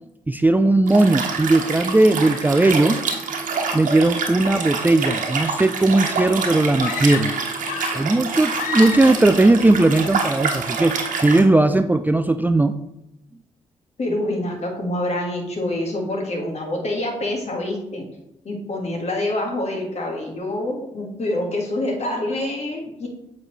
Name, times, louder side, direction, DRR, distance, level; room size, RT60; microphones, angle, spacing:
voice 1, 0.3-3.0 3.7-7.3 7.9-12.8, right 2 dB, 15° right, 9 dB, 0.4 m, -17 dB
Liquid, 0.9-11.4, right 4 dB, 70° right, 1.1 m, -26 dB
sound 1, 6.8-8.1 8.5-9.3, left 9 dB, 80° left, 0.5 m, -30 dB
voice 2, 14.0-18.0 18.5-23.1, left 1 dB, 50° left, 1 dB, 1.8 m, -26 dB
7.6 x 4.1 x 3.2 m, 0.83 s
supercardioid pair, 50°, 14 cm